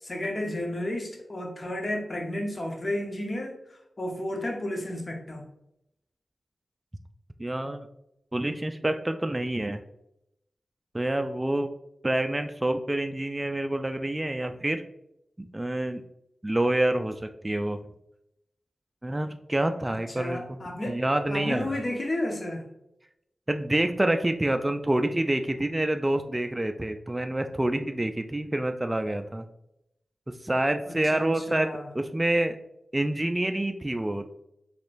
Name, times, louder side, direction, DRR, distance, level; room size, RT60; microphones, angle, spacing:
voice 1, 0.0-3.6 4.0-5.5 19.9-21.0 21.3-22.7 30.9-31.8, left 1 dB, 45° left, 2 dB, 0.9 m, -32 dB
voice 2, 7.4-7.9 8.3-9.8 10.9-11.7 12.0-14.8 15.4-16.0 16.4-17.8 19.0-20.6 20.9-21.8 23.5-29.4 30.4-32.6 32.9-34.2, right 1 dB, 20° right, 7 dB, 0.3 m, -27 dB
4.2 x 3.0 x 2.5 m, 0.81 s
cardioid pair, 40°, 0 cm